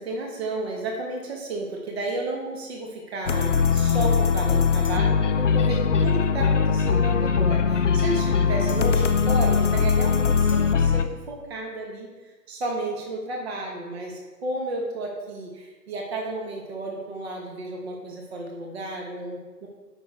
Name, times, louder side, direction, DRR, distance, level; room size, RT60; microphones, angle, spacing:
voice 1, 0.0-12.1 12.5-19.7, right 2 dB, 40° right, 0 dB, 1.2 m, -32 dB
sound 1, 3.3-11.0, left 5 dB, 50° left, 0.5 m, -21 dB
Guitar, 8.9-10.2, right 1 dB, 15° left, 1.4 m, -41 dB
7.4 x 5.9 x 4.5 m, 1.3 s
figure-of-eight pair, 145°, 49 cm